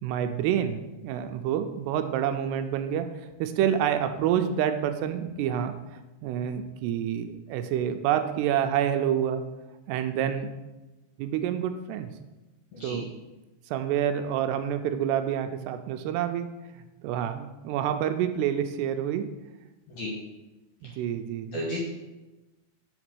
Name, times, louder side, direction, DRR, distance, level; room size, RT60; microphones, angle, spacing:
voice 1, 0.0-3.1 3.4-9.4 9.9-10.5 11.2-12.1 12.8-13.1 13.7-16.5 17.0-19.3 20.8-21.6, right 9 dB, 85° right, 8 dB, 2.6 m, -28 dB
voice 2, 12.7-13.0 19.9-20.1 21.5-21.8, equal, 65° left, -3 dB, 2.0 m, -33 dB
5.9 x 5.0 x 6.2 m, 1.1 s
omnidirectional pair, 4.8 m